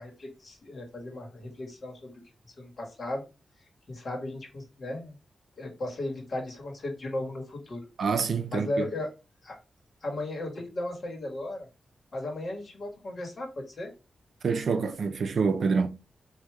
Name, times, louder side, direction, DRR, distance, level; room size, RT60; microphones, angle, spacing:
voice 1, 0.0-2.1 2.6-3.2 3.9-5.1 5.6-7.8 8.5-9.1 9.4-9.6 10.0-11.7 12.1-13.9, left 1 dB, 45° left, 1.5 m, -35 dB
voice 2, 8.0-8.9 14.4-15.9, right 5 dB, 65° right, 0.5 m, -26 dB
4.7 x 2.7 x 3.2 m
wide cardioid pair, 120°, 0 cm